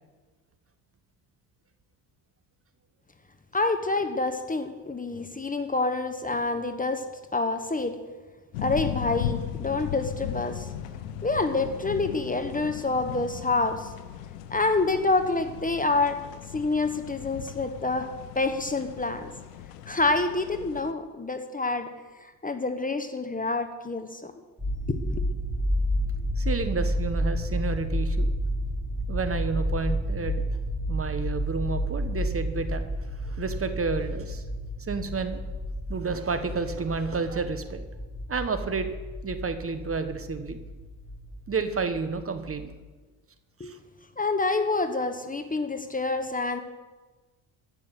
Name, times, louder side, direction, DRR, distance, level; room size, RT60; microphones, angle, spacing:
voice 1, 3.5-7.0 7.3-8.0 8.6-10.7 11.2-13.9 14.5-16.2 16.5-19.3 19.9-21.9 22.4-24.3 24.9-25.2 43.6-43.7 44.2-46.6, left 3 dB, 15° left, 8 dB, 1.2 m, -27 dB
sound 1, 8.5-20.9, left 10 dB, 85° left, 0.9 m, -37 dB
sound 2, 24.6-42.6, equal, 5° right, 4.5 m, -31 dB
voice 2, 26.4-28.3 29.1-30.4 30.9-32.8 33.2-34.4 34.8-35.4 35.9-37.8 38.3-39.0 39.2-40.6 41.5-42.7 43.6-43.8, right 4 dB, 30° right, 9 dB, 1.3 m, -30 dB
14.0 x 6.4 x 8.1 m, 1.3 s
hypercardioid pair, 65°, 47 cm